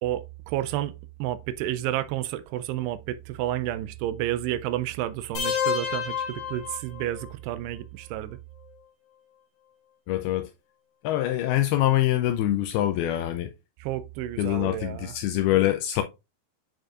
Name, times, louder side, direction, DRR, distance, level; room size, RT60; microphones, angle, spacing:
voice 1, 0.0-8.4 13.8-15.1, right 13 dB, 85° right, 2.6 m, -31 dB
sound 1, 5.3-7.3, left 7 dB, 70° left, 2.0 m, -29 dB
voice 2, 10.1-10.5 11.0-13.5 14.4-16.0, left 13 dB, 85° left, 2.2 m, -24 dB
9.0 x 4.8 x 2.4 m
omnidirectional pair, 4.8 m